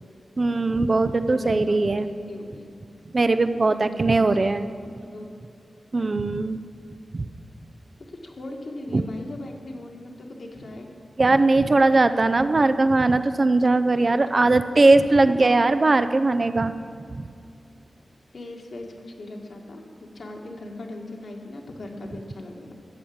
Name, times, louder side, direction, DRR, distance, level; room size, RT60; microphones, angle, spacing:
voice 1, 0.4-2.1 3.1-4.7 5.9-6.6 7.1-7.3 8.9-9.0 11.2-16.7 17.2-17.3, right 2 dB, 40° right, 11 dB, 0.5 m, -20 dB
voice 2, 1.3-2.7 3.7-5.3 8.1-10.9 11.8-12.0 14.4-14.8 15.3-15.6 18.3-19.8 20.1-22.7, left 2 dB, 60° left, 2 dB, 1.7 m, -39 dB
13.0 x 7.2 x 8.6 m, 2.5 s
wide cardioid pair, 110°, 0 cm